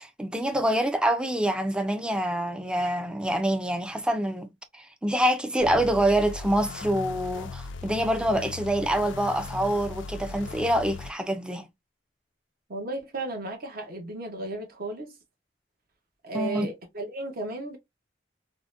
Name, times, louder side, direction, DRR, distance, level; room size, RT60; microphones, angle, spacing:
voice 1, 0.0-11.7 16.3-16.7, right 1 dB, 5° right, 0.4 m, -26 dB
sound 1, 5.6-11.1, left 4 dB, 70° left, 0.4 m, -38 dB
voice 2, 12.7-15.1 16.2-17.8, right 2 dB, 50° right, 0.9 m, -34 dB
3.7 x 2.1 x 2.5 m
head